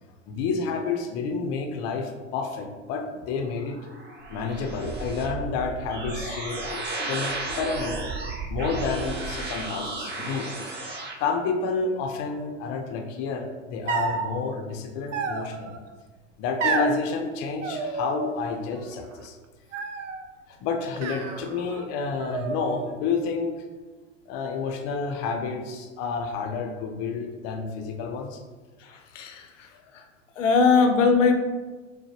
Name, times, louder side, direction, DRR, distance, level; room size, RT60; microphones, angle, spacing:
voice 1, 0.3-3.8 4.3-8.0 8.5-10.5 11.2-15.8 16.4-19.4 20.5-23.6 24.3-28.4 29.7-29.8, left 4 dB, 40° left, 3 dB, 0.6 m, -30 dB
sound 1, 3.5-11.1, right 2 dB, 30° right, 0.8 m, -34 dB
sound 2, 13.9-14.3 15.1-15.8 16.6-17.0 17.6-18.4 18.7-19.3 19.7-20.3 21.0-21.9 22.2-22.9, right 4 dB, 75° right, 0.6 m, -30 dB
voice 2, 28.8-29.7 29.9-30.0 30.4-31.3, left 5 dB, 80° left, 5 dB, 0.7 m, -21 dB
6.3 x 2.1 x 2.9 m, 1.3 s
hypercardioid pair, 95°, 37 cm